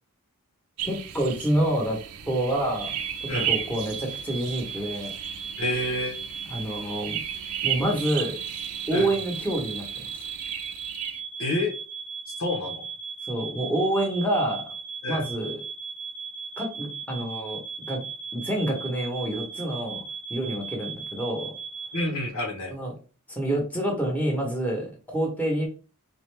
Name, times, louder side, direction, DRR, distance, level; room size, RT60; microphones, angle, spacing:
voice 1, 0.8-2.0 2.3-2.9 3.2-5.1 6.5-7.2 7.6-8.4 8.9-10.1 13.3-14.6 15.1-15.6 16.6-17.6 17.9-18.0 18.3-20.0 20.3-21.5 22.7-22.9 23.3-25.7, right 1 dB, 5° left, 0 dB, 1.0 m, -27 dB
sound 1, 0.8-11.2, right 10 dB, 85° right, 0.5 m, -35 dB
sound 2, 2.7-22.0, right 5 dB, 90° left, 2.0 m, -37 dB
voice 2, 5.6-6.2 8.9-9.1 11.4-11.7 12.3-12.9 15.0-15.3 21.9-22.7, left 1 dB, 70° left, 1 dB, 1.2 m, -28 dB
4.1 x 2.6 x 3.3 m, 0.35 s
head